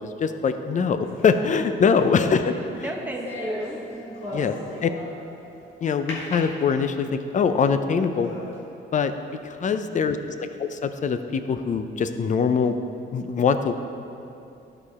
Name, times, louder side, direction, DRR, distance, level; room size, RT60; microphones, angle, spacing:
voice 1, 0.0-2.6 4.3-4.5 4.8-4.9 5.8-8.3 8.9-9.1 9.4-12.8 13.1-13.7, left 6 dB, 40° left, 9 dB, 0.5 m, -23 dB
sound 1, 1.0-5.4 6.1-7.2 7.7-7.8 8.1-8.6, left 2 dB, 75° left, 1.7 m, -38 dB
voice 2, 1.2-1.9 2.2-4.7 9.7-10.3, right 1 dB, 10° right, -1 dB, 1.2 m, -36 dB
11.5 x 5.0 x 4.2 m, 2.7 s
cardioid pair, 90°, 20 cm